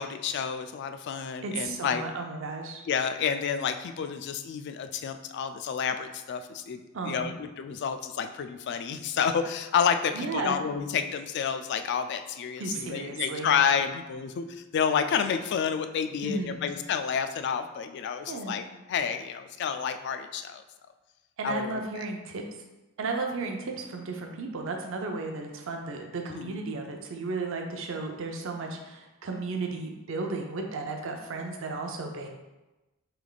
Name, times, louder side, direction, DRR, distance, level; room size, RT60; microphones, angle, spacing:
voice 1, 0.0-2.0 2.9-18.6 18.9-20.6 21.4-22.1 26.3-26.6, left 7 dB, 55° left, 9 dB, 0.3 m, -30 dB
voice 2, 1.4-2.8 6.9-7.3 10.1-10.6 12.6-13.5 16.2-16.7 18.3-18.6 21.4-22.4 23.0-32.3, right 3 dB, 65° right, 3 dB, 0.5 m, -34 dB
3.3 x 3.1 x 3.9 m, 1.1 s
head